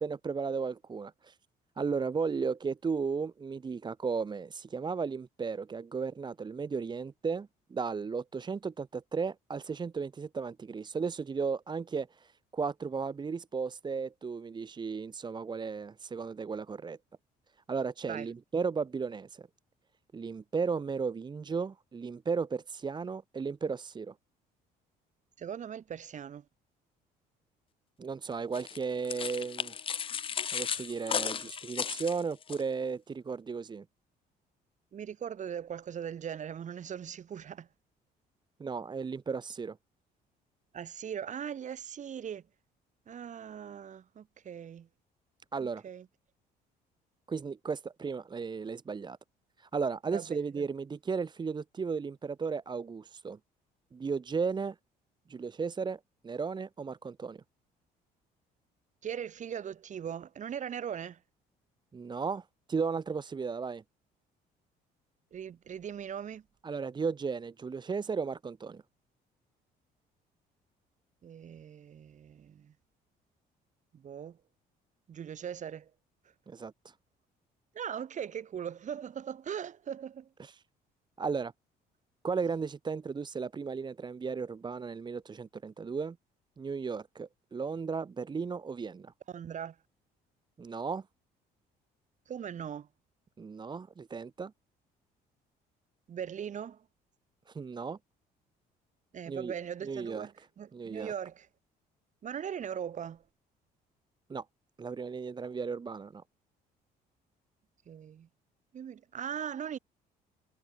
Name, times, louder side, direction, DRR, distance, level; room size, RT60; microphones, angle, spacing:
voice 1, 0.0-1.4 1.8-17.0 17.7-19.5 20.1-24.1 28.0-29.7 30.5-33.8 38.6-39.8 45.5-45.8 47.3-49.2 49.6-53.4 53.9-54.8 55.3-57.4 61.9-63.8 66.6-68.8 76.5-76.9 80.4-80.6 81.2-81.5 82.2-86.2 86.6-89.1 90.6-91.1 93.4-94.5 97.5-98.0 99.3-99.5 99.8-100.3 100.7-101.1 104.3-104.5 104.8-106.2, right 5 dB, 25° right, 1.2 m, -35 dB
voice 2, 25.4-26.4 34.9-37.7 40.7-42.4 43.1-44.9 45.6-46.1 50.1-50.7 59.0-61.2 65.3-66.4 71.2-72.7 73.9-74.4 75.1-75.9 77.7-80.3 89.3-89.8 92.3-92.9 96.1-96.8 99.1-101.5 102.2-103.2 107.9-108.3 108.7-109.8, right 8 dB, 45° right, 4.0 m, -40 dB
sound 1, 28.5-32.6, left 7 dB, 30° left, 0.5 m, -35 dB
cardioid pair, 110°, 17 cm